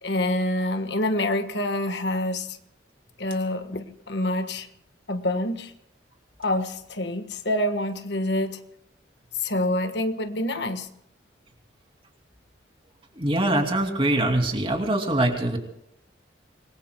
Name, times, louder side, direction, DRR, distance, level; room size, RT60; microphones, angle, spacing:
voice 1, 0.0-2.6 3.2-4.7 5.1-5.7 6.4-8.6 9.4-10.9, left 1 dB, 65° left, 8 dB, 1.4 m, -26 dB
voice 2, 13.1-15.6, right 1 dB, 30° right, 3 dB, 2.7 m, -23 dB
26.5 x 21.0 x 2.3 m, 0.77 s
head